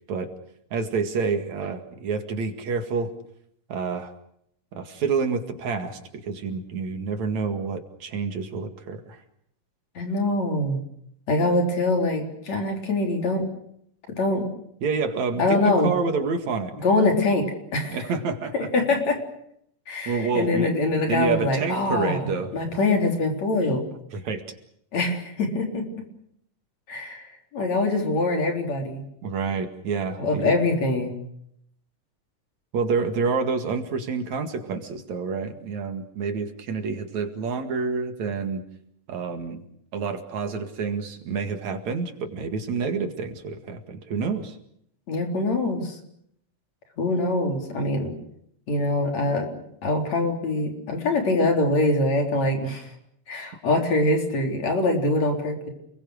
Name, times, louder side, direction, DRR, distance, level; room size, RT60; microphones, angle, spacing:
voice 1, 0.7-3.1 3.7-4.1 4.8-9.2 14.8-16.7 17.9-18.7 20.1-20.7 21.1-22.5 24.1-24.4 29.2-30.5 32.7-38.7 39.1-39.6 39.9-44.6, right 5 dB, 65° right, 7 dB, 3.3 m, -28 dB
voice 2, 10.0-10.8 11.3-13.5 14.1-14.5 15.4-15.9 16.8-17.5 17.7-18.0 18.5-19.2 19.9-23.9 24.9-25.8 26.9-29.0 30.2-31.2 45.1-46.0 47.0-48.1 48.7-49.5 49.8-52.9 53.3-55.7, left 2 dB, 60° left, 3 dB, 5.1 m, -24 dB
29.5 x 22.0 x 6.5 m, 0.71 s
omnidirectional pair, 3.5 m